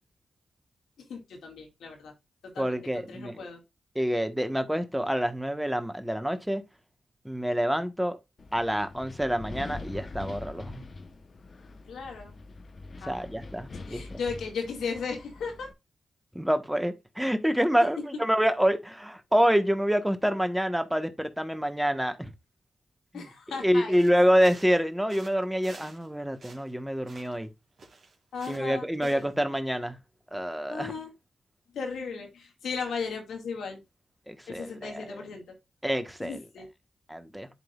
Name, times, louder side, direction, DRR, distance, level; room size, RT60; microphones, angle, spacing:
voice 1, 1.1-2.1 2.4-3.6 11.9-12.3 13.0-13.2 13.7-15.7 23.1-24.6 28.3-29.2 30.7-31.1 31.7-33.8 34.5-35.4 36.2-36.7, left 5 dB, 90° left, 2.0 m, -36 dB
voice 2, 2.6-3.4 3.9-6.6 7.2-8.2 8.5-10.8 13.1-14.0 16.3-22.3 23.1-23.3 23.6-27.5 28.5-30.0 30.3-30.9 34.3-35.2 35.8-36.4 37.1-37.5, equal, 5° right, 1.3 m, -27 dB
Wind, 8.4-15.7, left 3 dB, 55° left, 0.9 m, -43 dB
sound 1, 23.9-24.8 25.1-26.1 26.3-27.5 27.8-29.4, right 3 dB, 65° right, 2.3 m, -51 dB
11.0 x 3.8 x 2.4 m
cardioid pair, 55°, 0 cm